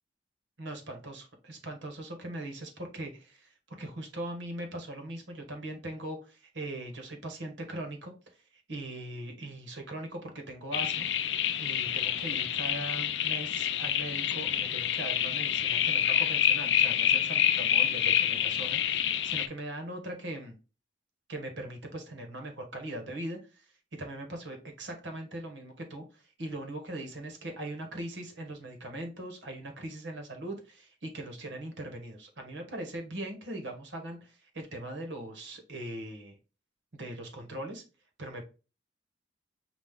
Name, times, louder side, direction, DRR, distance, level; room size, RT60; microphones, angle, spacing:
voice 1, 0.6-11.1 11.6-20.5 21.3-36.4 36.9-37.8 38.2-38.4, right 1 dB, 80° right, 1.3 m, -40 dB
sound 1, 10.7-19.5, left 9 dB, 70° left, 0.4 m, -27 dB
5.2 x 2.4 x 3.6 m
head